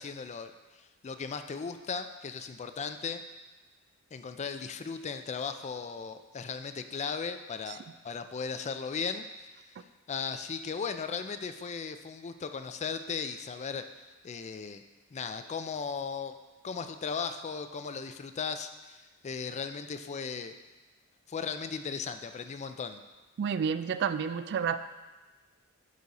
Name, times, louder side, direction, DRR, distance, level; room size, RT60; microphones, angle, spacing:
voice 1, 0.0-3.2 4.1-9.3 10.1-13.8 14.2-14.8 15.1-16.3 16.6-20.5 21.3-23.0, left 5 dB, 30° left, 9 dB, 0.4 m, -37 dB
voice 2, 23.4-24.8, right 7 dB, 50° right, 12 dB, 0.3 m, -30 dB
11.5 x 4.0 x 4.1 m, 1.2 s
head